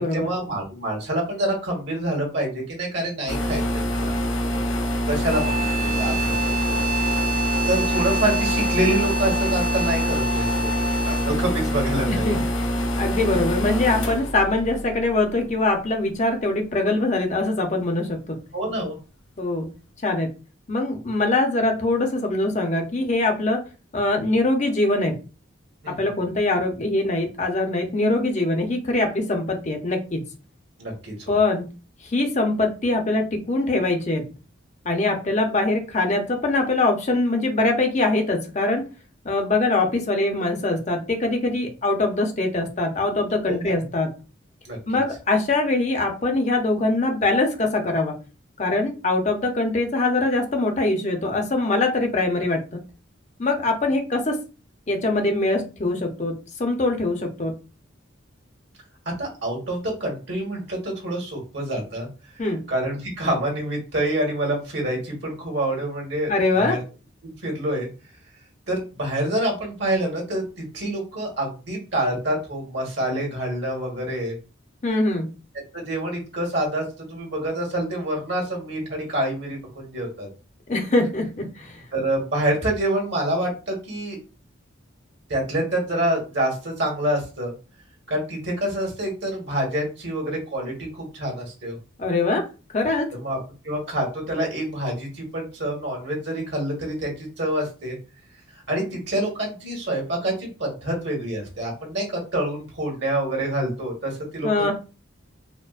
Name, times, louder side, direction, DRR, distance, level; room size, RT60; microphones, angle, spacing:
voice 1, 0.0-4.2 4.5-4.6 5.0-6.9 7.7-10.7 11.0-12.4 18.5-19.0 25.8-26.0 30.8-31.3 43.4-43.7 44.6-44.8 59.2-62.1 62.7-66.3 66.6-66.8 67.2-67.9 68.7-74.4 75.7-76.8 77.1-80.3 81.9-84.2 85.3-87.5 88.1-91.8 93.1-93.4 93.6-98.0 98.5-104.7, right 1 dB, 55° right, 0 dB, 1.4 m, -27 dB
sound 1, 3.3-15.7, equal, 75° left, 0.7 m, -25 dB
sound 2, 5.3-11.5, right 2 dB, 40° right, 0.5 m, -28 dB
voice 2, 12.1-12.4 13.0-18.4 19.4-19.7 20.0-20.3 20.7-23.6 23.9-25.2 26.0-30.2 31.3-31.7 32.0-34.2 34.8-38.9 39.2-44.1 44.9-48.2 48.6-52.6 53.4-54.4 54.9-57.5 62.4-62.6 66.3-66.8 74.8-75.3 80.7-81.8 92.0-92.4 92.7-93.1 104.4-104.7, left 2 dB, 35° left, 3 dB, 0.6 m, -23 dB
4.3 x 2.2 x 2.4 m, 0.33 s
head